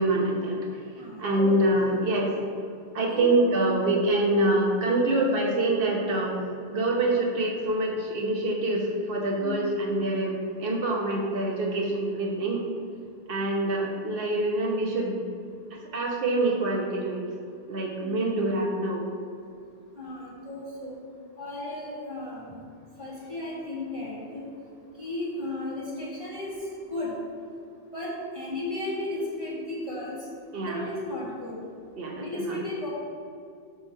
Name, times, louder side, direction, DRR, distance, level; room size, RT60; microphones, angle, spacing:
voice 1, 0.0-2.3 2.9-6.3 6.7-12.7 13.3-15.2 15.7-17.2 17.7-19.0 30.5-30.8 32.0-32.6, right 2 dB, 60° right, -1 dB, 1.2 m, -26 dB
voice 2, 1.0-1.7 2.1-2.2 3.1-3.3 9.4-9.6 12.3-12.5 18.0-18.3 20.0-21.0 21.4-22.6 23.0-24.4 25.0-26.5 26.9-27.1 27.9-30.2 30.6-31.5 32.2-32.9, left 2 dB, 30° right, -7 dB, 1.6 m, -35 dB
8.0 x 3.5 x 6.4 m, 2.3 s
omnidirectional pair, 1.1 m